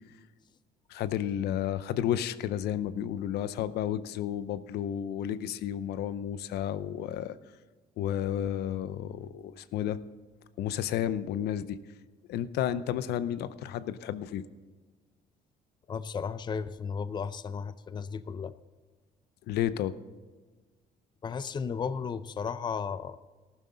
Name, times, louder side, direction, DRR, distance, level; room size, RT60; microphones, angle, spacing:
voice 1, 0.9-7.4 8.0-10.0 10.6-11.8 12.3-14.4 19.5-19.9, left 10 dB, 75° left, 14 dB, 0.7 m, -32 dB
voice 2, 15.9-18.5 21.2-23.2, left 6 dB, 25° left, 13 dB, 0.5 m, -34 dB
14.5 x 12.0 x 3.9 m, 1.3 s
cardioid pair, 110°, 17 cm